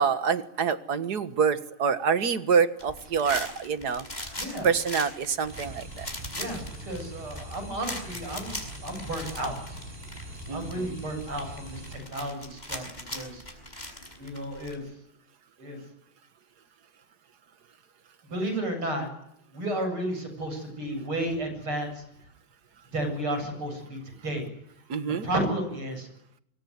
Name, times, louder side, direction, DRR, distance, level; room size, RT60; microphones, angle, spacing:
voice 1, 0.0-4.1 4.6-6.1 10.5-11.0 24.9-25.3, right 6 dB, 50° right, 11 dB, 1.9 m, -26 dB
sound 1, 2.8-14.7, left 1 dB, 20° left, 6.0 m, -40 dB
voice 2, 4.4-4.7 6.3-9.8 10.5-12.9 13.1-13.4 14.2-14.8 15.6-15.8 18.3-19.1 19.5-22.0 22.9-24.0 24.2-24.5 25.2-26.1, right 1 dB, 85° right, 7 dB, 8.8 m, -32 dB
sound 2, 5.5-12.0, right 1 dB, 25° right, 5.4 m, -42 dB
26.0 x 23.0 x 9.6 m, 0.77 s
omnidirectional pair, 2.3 m